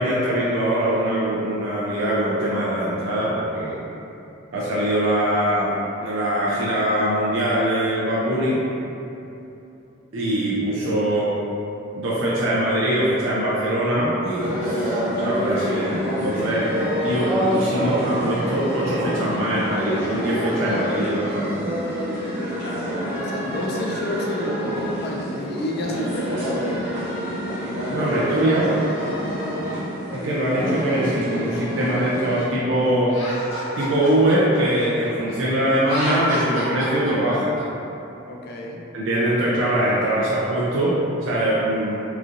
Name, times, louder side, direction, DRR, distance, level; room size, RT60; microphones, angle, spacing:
voice 1, 0.0-3.8 4.5-5.7 6.0-8.6 10.1-11.3 11.9-21.7 27.9-28.7 30.1-33.1 33.8-37.5 38.9-42.0, right 1 dB, 65° right, -8 dB, 0.4 m, -22 dB
sound 1, 14.4-32.4, equal, 10° right, 1.1 m, -27 dB
voice 2, 22.6-26.7 38.3-38.8, left 1 dB, 55° left, -2 dB, 0.4 m, -30 dB
Laughter, 33.1-35.3 35.8-37.6, equal, 70° left, 1.0 m, -30 dB
3.0 x 2.5 x 2.5 m, 2.8 s
head